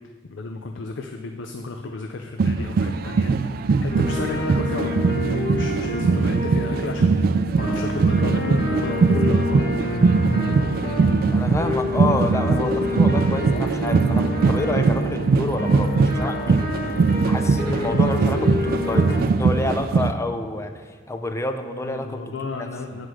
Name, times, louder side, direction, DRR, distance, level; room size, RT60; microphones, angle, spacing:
voice 1, 0.2-7.3 7.5-9.6 21.8-23.1, left 3 dB, 85° left, 5 dB, 0.5 m, -33 dB
sound 1, 2.4-20.1, right 4 dB, 55° right, 0.3 m, -21 dB
sound 2, 3.9-19.2, left 1 dB, 65° left, 1.6 m, -28 dB
voice 2, 11.3-22.7, left 2 dB, 15° left, 7 dB, 0.5 m, -29 dB
8.2 x 4.8 x 6.2 m, 1.5 s
head